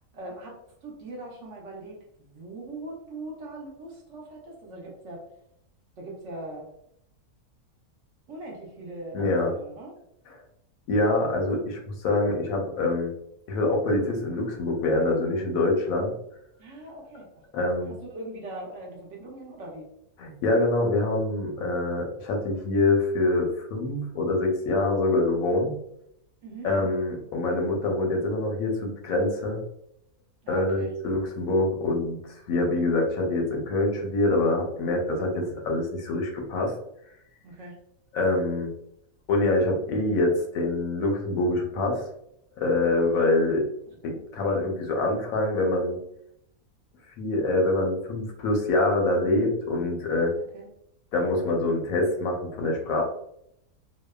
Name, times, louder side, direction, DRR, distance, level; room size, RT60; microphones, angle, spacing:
voice 1, 0.1-0.5 0.8-5.2 6.0-6.7 8.3-9.9 16.6-17.3 17.8-19.9 26.4-27.0 30.4-30.9 37.4-37.8 43.1-43.6 44.0-44.2 50.5-50.7, right 2 dB, 60° right, -2 dB, 0.9 m, -41 dB
voice 2, 9.1-9.5 10.9-13.1 13.5-16.1 17.5-17.9 20.2-25.8 26.6-29.6 30.5-32.2 32.5-36.7 38.1-38.7 39.3-42.0 42.6-43.6 44.0-46.0 47.2-50.3 51.1-53.0, left 2 dB, 75° left, 1 dB, 1.0 m, -25 dB
2.7 x 2.1 x 2.2 m, 0.75 s
omnidirectional pair, 1.6 m